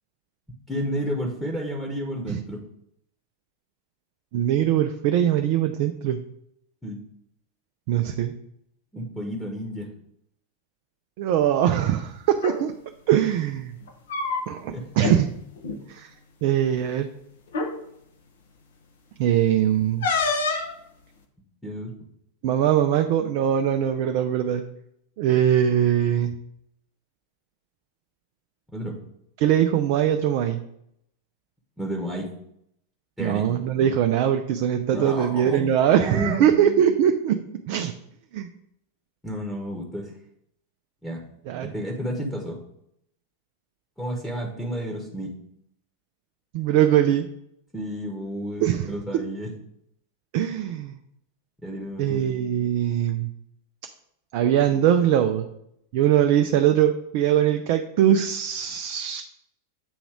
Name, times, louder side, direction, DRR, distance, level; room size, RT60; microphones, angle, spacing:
voice 1, 0.7-2.6 6.8-7.0 8.9-9.9 14.7-14.8 21.6-22.0 28.7-29.0 31.8-32.3 33.2-33.5 34.9-36.5 39.2-40.1 41.0-41.2 41.7-42.6 44.0-45.3 47.7-49.5 51.6-52.2, equal, 5° left, -1 dB, 1.1 m, -31 dB
voice 2, 4.3-6.2 7.9-8.3 11.2-12.7 13.1-13.7 14.5-15.3 15.9-16.1 16.4-17.1 19.2-20.1 22.4-24.6 25.2-26.4 29.4-30.6 33.2-37.4 37.7-37.9 38.3-38.5 41.5-41.7 46.5-47.3 48.6-49.0 50.3-51.0 52.0-53.3 54.3-55.5 55.9-59.2, right 10 dB, 45° right, 6 dB, 0.4 m, -21 dB
sound 1, 12.3-12.6 13.8-14.7 15.0-15.2 15.6-15.8 16.8-16.9 17.5-17.7 20.0-20.7, left 4 dB, 60° left, 0.8 m, -26 dB
7.9 x 3.0 x 4.8 m, 0.75 s
figure-of-eight pair, 90°, 0 cm